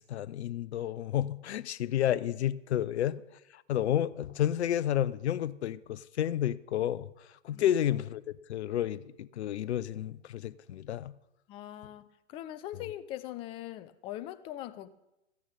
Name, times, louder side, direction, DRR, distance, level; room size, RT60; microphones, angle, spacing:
voice 1, 0.0-3.2 3.5-8.2 8.5-11.1, left 11 dB, 70° left, 0.6 m, -31 dB
voice 2, 11.5-12.0 12.3-14.9, left 13 dB, 15° left, 0.3 m, -41 dB
13.5 x 8.5 x 5.3 m
hypercardioid pair, 115°, 34 cm